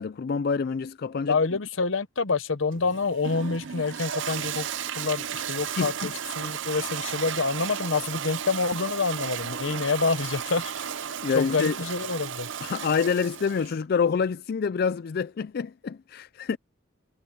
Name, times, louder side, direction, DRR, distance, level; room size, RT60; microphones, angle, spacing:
voice 1, 0.0-1.4 5.8-6.1 11.2-11.7 12.6-16.6, left 5 dB, 55° left, 0.4 m, -27 dB
voice 2, 1.3-4.7 5.0-10.9 11.3-12.5, left 4 dB, 80° left, 1.0 m, -27 dB
Toilet flush, 2.7-13.8, right 8 dB, 70° right, 0.6 m, -34 dB
head